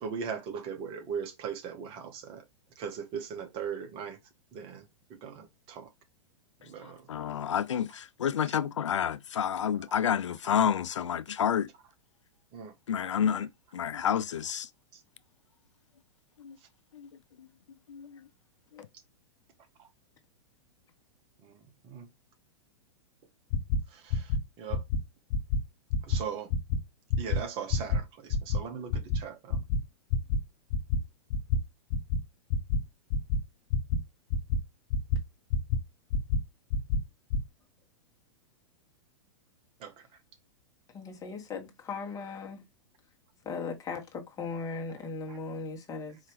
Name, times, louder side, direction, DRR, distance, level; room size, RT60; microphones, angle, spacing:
voice 1, 0.0-2.4 2.7-4.2 4.5-5.9 6.6-7.1 8.5-8.6 9.3-9.4 12.5-12.7 14.9-15.0 19.8-19.9 21.4-22.1 23.9-24.8 26.0-26.5 27.2-29.6 39.8-40.2 45.3-45.4, right 7 dB, 35° right, 1.1 m, -39 dB
voice 2, 7.1-11.7 12.9-14.7 16.4-16.6 16.9-17.1 17.4-17.5 17.9-18.3 18.7-18.8, left 8 dB, 80° left, 0.4 m, -29 dB
sound 1, 23.5-23.8 24.1-24.4 24.7-25.0 25.3-25.6 25.9-26.2 26.5-26.8 27.1-27.4 27.7-28.0 28.3-28.6 28.9-29.2 29.5-29.8 30.1-30.4 30.7-31.0 31.3-31.6 31.9-32.2 32.5-32.8 33.1-33.4 33.7-34.0 34.3-34.6 34.9-35.2 35.5-35.8 36.1-36.4 36.7-37.0 37.3-37.4, left 5 dB, 50° left, 0.8 m, -26 dB
voice 3, 40.9-42.6 43.4-46.2, left 4 dB, 20° left, 1.3 m, -38 dB
4.7 x 2.9 x 3.0 m
hypercardioid pair, 110°, 15 cm